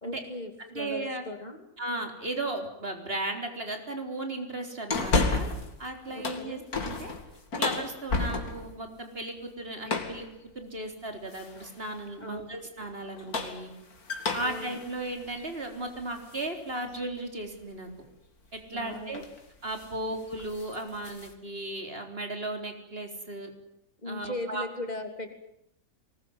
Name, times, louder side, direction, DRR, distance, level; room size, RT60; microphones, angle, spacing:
voice 1, 0.0-1.7 6.1-6.6 12.2-12.5 14.4-14.8 18.7-19.3 19.9-20.2 24.0-25.3, left 2 dB, 30° left, 5 dB, 3.2 m, -38 dB
voice 2, 0.7-1.2 1.8-5.5 5.8-7.1 7.6-10.3 10.5-13.7 14.3-17.9 18.5-19.2 19.6-23.5 24.1-24.6, right 2 dB, 40° right, 5 dB, 4.2 m, -36 dB
sound 1, 4.9-5.7 6.1-8.8 9.9-10.3 11.3-11.8 13.0-16.5 16.9-17.0 18.6-18.8 19.1-19.4 19.7-20.0 20.3-21.3, left 3 dB, 85° left, 3.0 m, -32 dB
23.5 x 20.5 x 9.6 m, 0.79 s
omnidirectional pair, 1.5 m